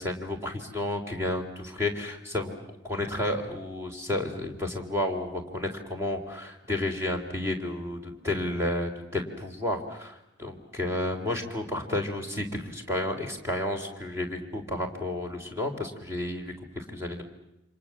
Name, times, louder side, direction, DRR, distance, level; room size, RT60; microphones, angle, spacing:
voice 1, 0.0-17.2, left 1 dB, 15° right, 2 dB, 3.8 m, -31 dB
29.0 x 26.0 x 7.5 m, 0.89 s
head